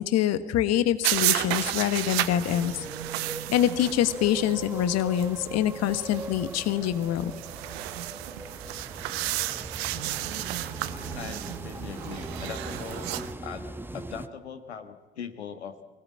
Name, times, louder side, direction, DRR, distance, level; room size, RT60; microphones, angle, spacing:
voice 1, 0.0-2.9 3.5-7.3, left 11 dB, 50° left, 12 dB, 1.2 m, -25 dB
sound 1, 1.0-13.3, right 16 dB, 70° right, 0.9 m, -33 dB
sound 2, 1.4-14.3, right 2 dB, 5° right, 1.0 m, -40 dB
voice 2, 11.1-13.1 13.4-15.8, left 7 dB, 85° left, 8 dB, 1.5 m, -40 dB
23.5 x 17.5 x 8.7 m, 1.3 s
figure-of-eight pair, 60°, 32 cm